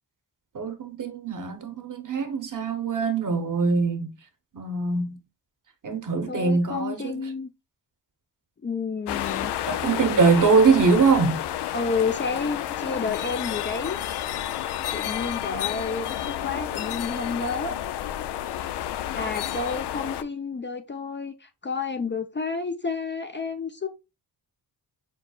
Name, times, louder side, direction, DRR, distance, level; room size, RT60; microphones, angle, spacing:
voice 1, 0.5-4.1 4.5-5.2 5.8-7.2 9.7-11.4, right 4 dB, 50° right, 1.0 m, -22 dB
voice 2, 6.3-7.5 8.6-9.5 10.3-10.5 11.7-14.0 14.9-17.8 19.1-23.9, left 4 dB, 25° left, 0.5 m, -30 dB
sound 1, 9.1-20.2, left 12 dB, 75° left, 0.5 m, -30 dB
4.6 x 4.0 x 2.3 m
cardioid pair, 80°, 41 cm